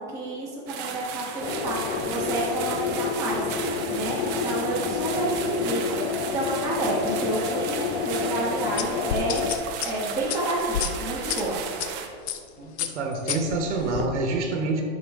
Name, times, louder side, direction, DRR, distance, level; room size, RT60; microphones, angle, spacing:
voice 1, 0.0-6.0 6.3-9.5 9.8-11.6, right 1 dB, 10° right, -8 dB, 1.1 m, -30 dB
sound 1, 0.7-12.1, right 7 dB, 30° right, 0.7 m, -35 dB
sound 2, 1.4-9.5, left 5 dB, 35° left, 0.5 m, -29 dB
sound 3, 8.8-11.9 12.3-12.5 12.8-14.1, left 9 dB, 70° left, 0.7 m, -30 dB
voice 2, 12.6-14.8, right 3 dB, 90° right, 3 dB, 1.2 m, -27 dB
9.0 x 5.9 x 3.5 m, 2.2 s
supercardioid pair, 150°, 34 cm